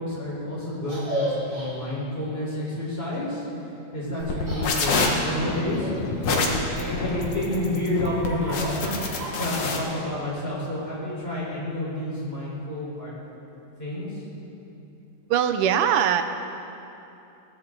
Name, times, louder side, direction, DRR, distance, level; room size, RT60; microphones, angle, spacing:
voice 1, 0.0-13.1 13.8-14.2, left 1 dB, 20° left, -6 dB, 4.7 m, -30 dB
Laughter, 0.8-1.7 4.2-4.8 5.4-6.6 7.2-9.8, right 1 dB, 45° right, 5.8 m, -34 dB
sound 1, 4.2-9.8, left 3 dB, 80° left, 2.9 m, -26 dB
voice 2, 15.3-16.2, right 9 dB, 75° right, 8 dB, 1.3 m, -22 dB
21.0 x 16.0 x 3.9 m, 2.8 s
omnidirectional pair, 3.3 m